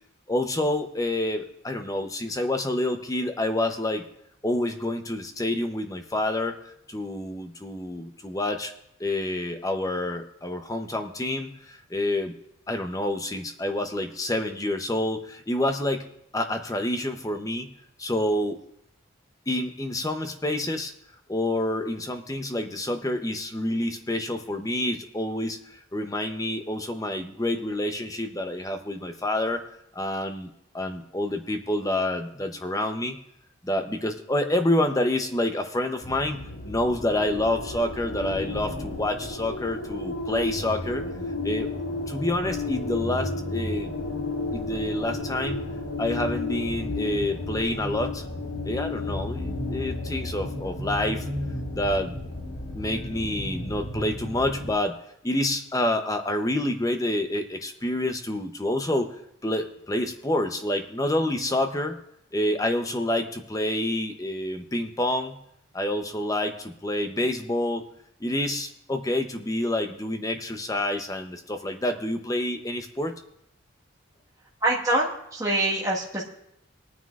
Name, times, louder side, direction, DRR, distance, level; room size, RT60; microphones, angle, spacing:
voice 1, 0.3-4.1 4.4-6.6 6.9-8.7 9.0-12.3 12.7-16.0 16.3-17.7 18.0-18.6 19.5-20.9 21.3-29.6 29.9-30.5 30.7-33.2 33.6-41.1 41.4-41.7 42.1-43.9 44.5-45.7 46.0-48.3 48.6-51.2 51.7-52.1 52.7-55.0 55.2-59.1 59.4-62.0 62.3-65.4 65.7-67.8 68.2-73.1, left 1 dB, 15° left, 6 dB, 0.7 m, -28 dB
sound 1, 36.0-54.8, left 2 dB, 60° left, 1.6 m, -32 dB
voice 2, 74.6-76.2, right 1 dB, 15° right, -5 dB, 1.5 m, -25 dB
22.0 x 9.4 x 2.4 m, 0.78 s
head